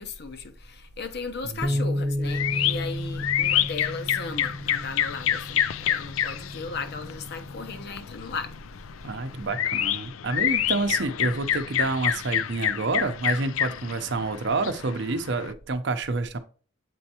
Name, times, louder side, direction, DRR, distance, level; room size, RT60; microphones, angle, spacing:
voice 1, 0.0-8.5, left 4 dB, 55° left, 0.7 m, -36 dB
voice 2, 1.4-1.8 9.0-16.4, right 3 dB, 60° right, 0.7 m, -28 dB
Bass guitar, 1.6-7.9, left 1 dB, 20° right, 0.6 m, -32 dB
sound 1, 2.2-15.5, left 10 dB, 75° left, 0.4 m, -28 dB
7.7 x 4.4 x 2.8 m
head